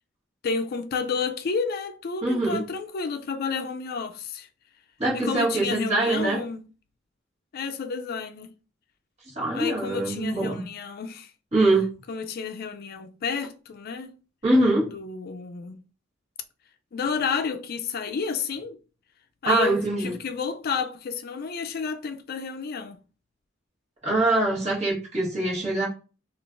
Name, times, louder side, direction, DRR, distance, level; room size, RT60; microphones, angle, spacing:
voice 1, 0.4-4.5 5.1-6.6 7.5-8.5 9.5-11.3 12.1-14.1 14.9-15.8 16.9-18.8 19.4-23.0, left 5 dB, 50° left, 0.4 m, -31 dB
voice 2, 2.2-2.6 5.0-6.4 9.4-10.6 11.5-11.9 14.4-14.9 19.4-20.1 24.0-25.9, right 2 dB, 35° right, 1.4 m, -23 dB
3.6 x 2.4 x 2.5 m
head